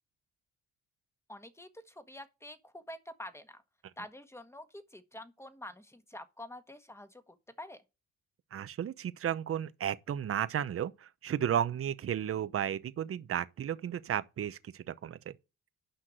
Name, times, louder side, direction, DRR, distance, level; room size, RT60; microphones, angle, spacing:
voice 1, 1.3-3.6 4.0-7.8, left 1 dB, 10° left, 1.5 m, -47 dB
voice 2, 8.5-15.3, right 9 dB, 50° right, 0.8 m, -33 dB
10.0 x 5.8 x 6.5 m
cardioid pair, 90°, 30 cm